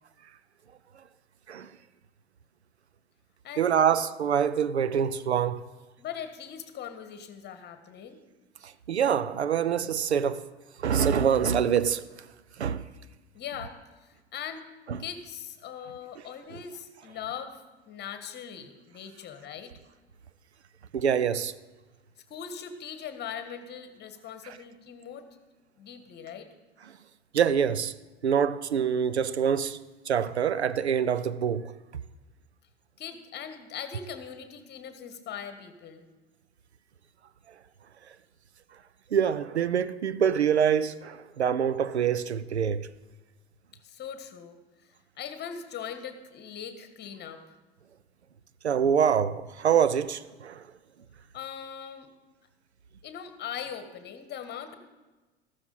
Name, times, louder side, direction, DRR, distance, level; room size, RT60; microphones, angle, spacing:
voice 1, 3.6-5.6 8.6-10.5 10.8-12.0 12.6-12.8 14.9-15.0 16.5-16.6 20.9-21.5 24.4-24.6 26.9-27.0 27.3-27.9 28.2-29.8 30.1-31.7 39.1-42.9 48.6-50.7, right 8 dB, 85° right, 0.6 m, -25 dB
voice 2, 6.0-8.2 13.3-13.8 14.0-14.6 15.0-19.7 22.3-25.3 25.8-26.5 33.0-36.0 43.7-44.6 45.2-47.4 51.3-52.1 53.0-54.8, left 8 dB, 30° left, 1.5 m, -40 dB
14.5 x 12.5 x 4.2 m
figure-of-eight pair, 85°, 32 cm